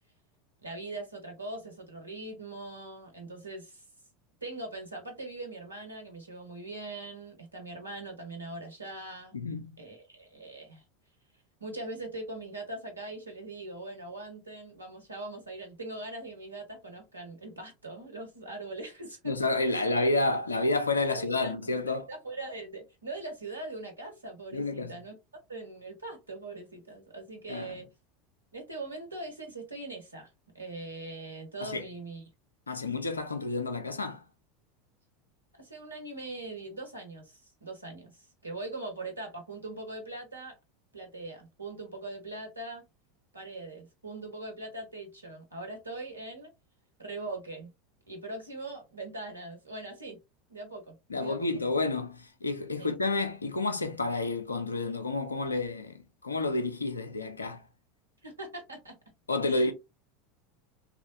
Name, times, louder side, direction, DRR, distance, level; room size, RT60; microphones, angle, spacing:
voice 1, 0.6-3.8 4.4-9.3 9.8-10.8 11.6-19.5 21.1-21.5 21.9-25.1 25.5-27.9 28.5-32.2 35.6-40.5 40.9-42.8 43.3-46.5 47.0-47.7 48.1-50.2 50.5-51.5 52.8-52.9 58.2-59.0 59.4-59.7, right 2 dB, 85° right, 1.0 m, -41 dB
voice 2, 9.3-9.7 19.3-22.1 24.5-24.9 27.5-27.7 31.6-31.8 32.7-34.2 51.1-57.6 59.3-59.7, left 2 dB, 85° left, 0.5 m, -30 dB
3.1 x 2.5 x 2.6 m
figure-of-eight pair, 80°, 0 cm